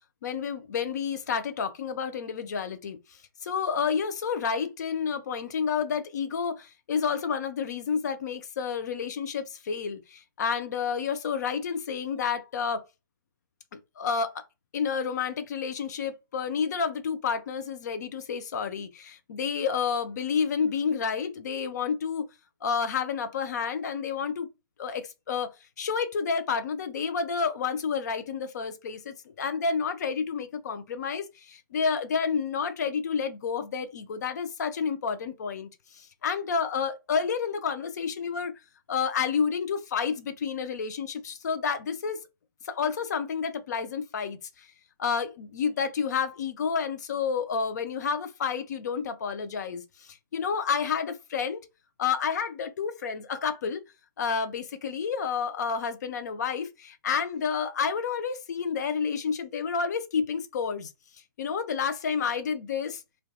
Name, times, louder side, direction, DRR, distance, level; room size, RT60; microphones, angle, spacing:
voice 1, 0.2-3.0 3.4-12.8 13.7-14.4 14.7-22.3 22.6-24.5 24.8-38.5 38.9-42.2 42.6-44.7 45.0-51.7 52.0-53.8 54.2-60.9 61.4-63.0, left 6 dB, 50° left, 0.4 m, -30 dB
2.6 x 2.2 x 2.2 m
figure-of-eight pair, 125°, 12 cm